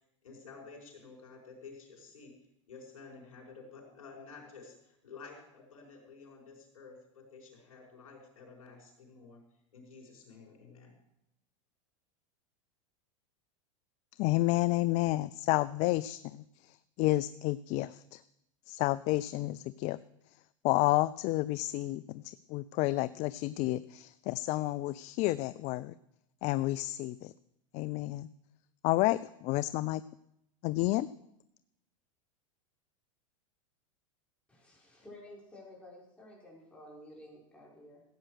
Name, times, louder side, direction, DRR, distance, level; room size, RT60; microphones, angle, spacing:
voice 1, 0.2-2.3 2.7-9.4 9.7-10.9, left 4 dB, 85° left, -1 dB, 4.9 m, -51 dB
voice 2, 14.2-18.2 18.7-20.0 20.6-25.9 26.4-27.3 27.7-28.3 28.8-30.0 30.6-31.1, left 18 dB, 45° left, 17 dB, 0.4 m, -30 dB
voice 3, 34.5-38.0, left 1 dB, 5° left, -4 dB, 5.7 m, -52 dB
15.5 x 8.9 x 6.4 m, 0.82 s
hypercardioid pair, 110°, 17 cm